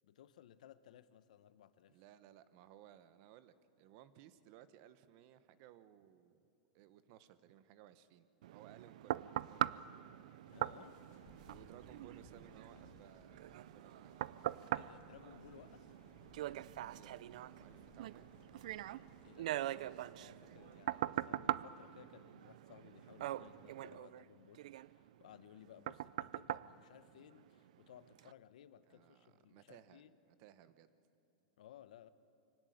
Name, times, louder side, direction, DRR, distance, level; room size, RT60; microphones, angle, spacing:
voice 1, 0.0-2.0 10.5-11.0 14.7-15.9 19.2-30.1 31.6-32.1, left 10 dB, 75° left, 14 dB, 1.0 m, -60 dB
voice 2, 1.9-6.4 6.7-9.2 9.5-9.9 11.5-14.3 16.8-18.2 28.9-30.9, right 11 dB, 45° right, 14 dB, 1.1 m, -61 dB
sound 1, 8.4-27.7 28.2-28.3, right 13 dB, 70° right, 0.5 m, -42 dB
sound 2, 10.4-21.2, left 6 dB, 40° left, 2.1 m, -65 dB
24.0 x 17.0 x 9.4 m, 2.8 s
supercardioid pair, 155°, 4 cm